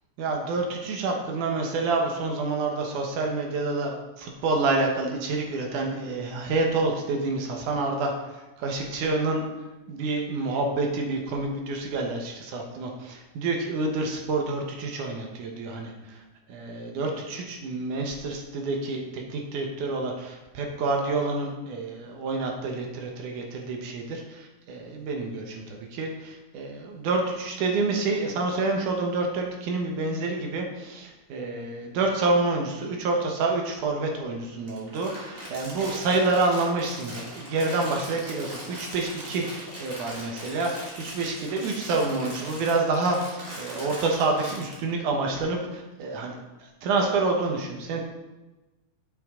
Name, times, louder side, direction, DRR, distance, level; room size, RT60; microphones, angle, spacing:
voice 1, 0.2-8.1 8.6-9.4 9.9-16.2 16.5-48.0, right 3 dB, 80° right, 1 dB, 2.7 m, -28 dB
Crumpling crinkling, 34.7-44.7, right 1 dB, 25° right, 2.5 m, -40 dB
9.2 x 7.8 x 3.8 m, 1.1 s
omnidirectional pair, 3.6 m